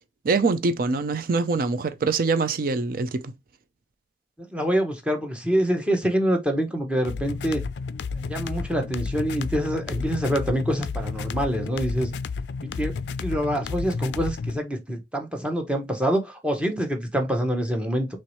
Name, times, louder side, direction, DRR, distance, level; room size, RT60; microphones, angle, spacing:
voice 1, 0.2-3.3, right 4 dB, 50° right, 0.5 m, -24 dB
voice 2, 4.5-7.6 8.3-12.1 12.6-12.9 13.2-18.1, equal, 5° right, 0.9 m, -25 dB
sound 1, 7.0-14.6, left 4 dB, 70° left, 0.3 m, -32 dB
4.5 x 3.1 x 3.0 m
head